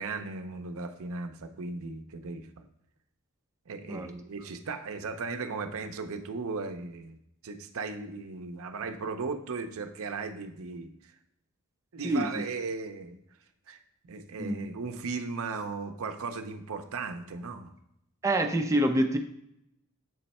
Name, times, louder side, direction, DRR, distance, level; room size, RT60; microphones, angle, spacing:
voice 1, 0.0-2.7 3.7-7.2 7.4-11.1 11.9-13.2 13.7-13.8 14.1-17.7, right 4 dB, 65° right, 7 dB, 0.6 m, -37 dB
voice 2, 12.0-12.5 14.4-14.7 18.2-19.2, right 1 dB, 15° right, 5 dB, 0.5 m, -26 dB
7.6 x 3.2 x 4.1 m, 0.76 s
head